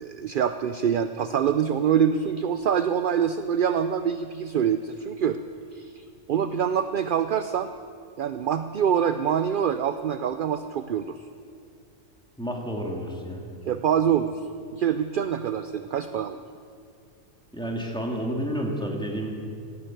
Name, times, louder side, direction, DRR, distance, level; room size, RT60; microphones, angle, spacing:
voice 1, 0.0-5.4 5.7-7.7 8.2-11.3 13.7-16.4, right 8 dB, 60° right, 10 dB, 0.5 m, -25 dB
voice 2, 12.4-13.4 17.5-19.3, equal, 5° left, -1 dB, 2.2 m, -30 dB
16.0 x 9.7 x 9.1 m, 2.3 s
omnidirectional pair, 1.4 m